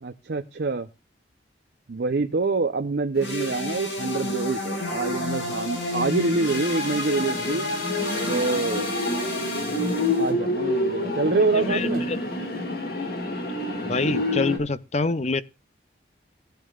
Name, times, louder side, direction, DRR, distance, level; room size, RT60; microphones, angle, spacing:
voice 1, 0.0-0.9 1.9-7.7 8.3-8.9 10.2-12.0, right 3 dB, 65° right, 0.6 m, -26 dB
sound 1, 3.2-10.3, left 2 dB, 90° left, 5.1 m, -30 dB
sound 2, 3.2-4.5 4.8-4.9 5.6-14.6, left 1 dB, 55° left, 2.1 m, -29 dB
voice 2, 11.5-12.2 13.8-15.4, left 3 dB, 35° left, 0.6 m, -26 dB
17.5 x 9.2 x 2.4 m
head